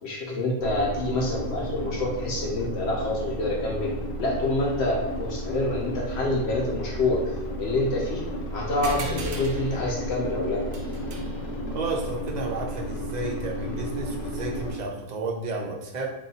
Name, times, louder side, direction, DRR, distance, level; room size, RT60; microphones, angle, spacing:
voice 1, 0.0-3.9 4.2-7.2 7.6-10.6, left 2 dB, 65° left, -2 dB, 0.8 m, -27 dB
sound 1, 0.6-14.7, equal, 90° left, 1.2 m, -33 dB
sound 2, 8.8-13.8, right 1 dB, 80° right, 1.0 m, -39 dB
voice 2, 11.7-16.1, right 2 dB, 50° right, 0 dB, 0.5 m, -32 dB
2.6 x 2.3 x 4.0 m, 1.0 s
omnidirectional pair, 1.3 m